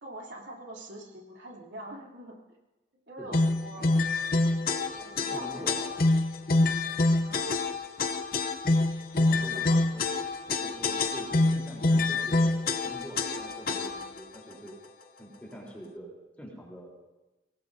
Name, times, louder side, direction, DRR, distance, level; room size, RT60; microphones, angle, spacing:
voice 1, 0.0-2.6 3.1-4.0 4.9-5.7 7.2-7.5 9.3-9.8, right 1 dB, 90° right, -2 dB, 3.1 m, -44 dB
sound 1, 3.3-14.2, left 2 dB, 50° left, 0.7 m, -26 dB
voice 2, 5.1-5.9 9.2-10.0 10.5-14.8 15.2-16.9, equal, 10° left, -2 dB, 3.8 m, -45 dB
24.0 x 18.5 x 2.7 m, 1.1 s
head